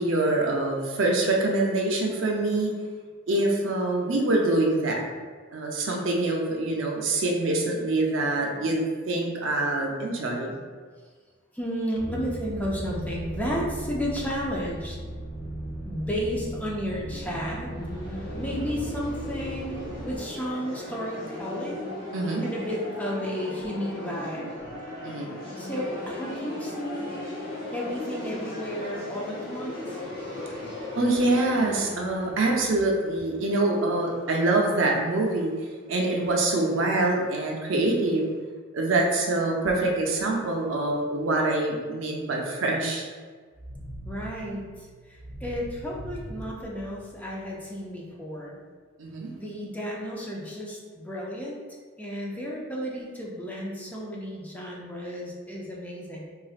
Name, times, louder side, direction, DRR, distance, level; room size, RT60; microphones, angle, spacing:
voice 1, 0.0-2.7 3.3-5.0 5.5-10.6 22.1-22.4 25.0-25.3 30.9-35.5 35.9-38.2 38.7-43.1 49.0-49.3, right 2 dB, 70° right, 0 dB, 0.6 m, -25 dB
voice 2, 11.5-15.0 15.8-17.7 18.1-21.9 22.4-24.5 25.6-27.4 27.7-30.0 44.0-48.6 49.4-51.6 52.0-56.3, equal, 10° left, -4 dB, 0.4 m, -33 dB
sound 1, 12.0-20.2, right 1 dB, 80° left, 1.4 m, -37 dB
sound 2, 16.0-33.7, left 1 dB, 45° left, 1.0 m, -37 dB
sound 3, 43.5-47.6, equal, 15° right, 0.8 m, -42 dB
4.0 x 2.4 x 2.4 m, 1.5 s
head